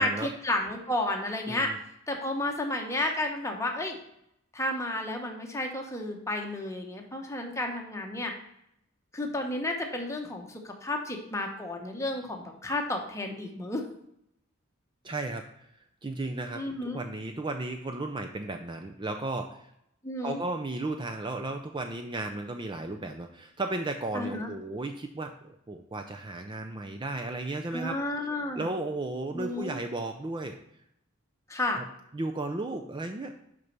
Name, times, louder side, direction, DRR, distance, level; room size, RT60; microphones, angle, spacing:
voice 1, 0.0-1.7 2.1-4.0 4.5-8.3 9.1-13.8 16.5-17.0 20.0-20.4 24.1-24.5 27.7-28.7 29.3-29.8 31.5-31.8, left 1 dB, 15° left, 2 dB, 1.1 m, -32 dB
voice 2, 1.5-1.8 15.0-15.7 16.0-19.7 20.2-28.0 28.6-30.6 31.7-31.9 32.1-33.3, right 2 dB, 25° right, 5 dB, 0.4 m, -34 dB
6.5 x 5.3 x 5.9 m, 0.78 s
head